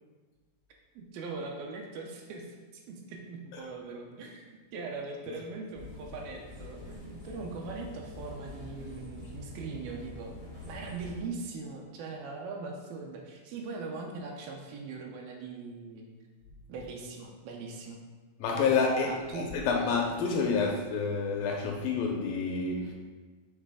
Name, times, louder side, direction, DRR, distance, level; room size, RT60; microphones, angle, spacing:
voice 1, 1.0-10.3 10.7-16.0 16.7-18.0 19.0-19.5, right 4 dB, 80° right, 1 dB, 2.4 m, -41 dB
sound 1, 5.7-11.2, left 2 dB, 30° right, 0.6 m, -45 dB
voice 2, 18.4-22.9, left 4 dB, 80° left, 1 dB, 2.1 m, -28 dB
7.4 x 3.3 x 4.9 m, 1.4 s
omnidirectional pair, 4.4 m